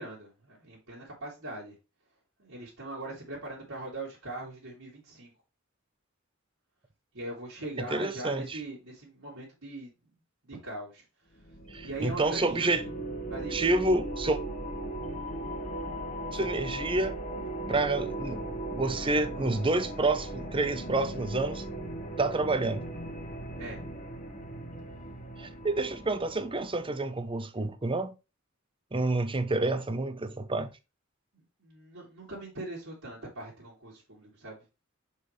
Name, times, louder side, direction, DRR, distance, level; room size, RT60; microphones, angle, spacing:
voice 1, 0.0-1.8 2.4-5.3 7.1-9.9 10.4-11.0 11.8-12.9 13.3-13.6 23.6-23.8 31.3-34.6, right 2 dB, 75° right, 2.9 m, -41 dB
voice 2, 7.9-8.6 11.7-12.8 13.5-14.4 16.3-17.2 17.7-18.4 18.7-21.6 22.2-22.8 25.4-28.1 28.9-30.7, right 2 dB, 25° right, 0.8 m, -28 dB
sound 1, 11.4-26.8, right 1 dB, 40° left, 1.5 m, -38 dB
6.0 x 5.6 x 3.2 m
head